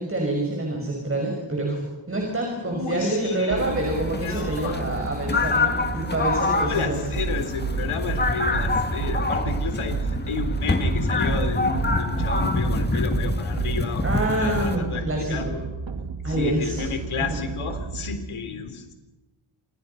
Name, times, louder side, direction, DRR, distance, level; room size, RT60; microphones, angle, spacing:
voice 1, 0.0-7.0 14.0-15.7 16.2-16.8, right 1 dB, 25° right, 0 dB, 6.1 m, -27 dB
voice 2, 2.6-3.9 4.1-4.9 6.5-14.1 14.4-15.5 16.3-18.9, left 5 dB, 80° left, 7 dB, 3.8 m, -32 dB
sound 1, 3.5-18.2, right 5 dB, 65° right, 2.4 m, -31 dB
sound 2, 3.6-14.8, left 3 dB, 20° left, 1.9 m, -27 dB
29.0 x 28.0 x 5.8 m, 1.2 s
wide cardioid pair, 165°, 48 cm